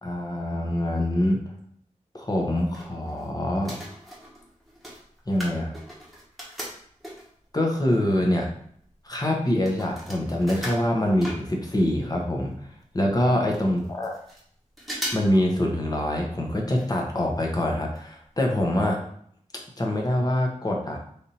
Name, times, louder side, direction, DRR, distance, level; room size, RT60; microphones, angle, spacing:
voice 1, 0.0-1.4 2.1-3.8 5.3-5.7 7.5-8.5 9.0-12.5 12.9-14.1 15.1-19.0 19.8-21.0, left 1 dB, 30° left, 0 dB, 0.9 m, -24 dB
sound 1, 2.3-3.3 3.6-7.4 8.1-8.2 8.3-12.0 12.2-12.3 12.5-12.6 13.2-13.3 13.5-14.4 14.8-15.4 15.7-15.8 16.7-17.1 17.4-17.5 18.0-18.1 18.4-18.5, equal, ahead, 1.1 m, -38 dB
3.4 x 2.7 x 4.2 m, 0.64 s
wide cardioid pair, 80°, 13 cm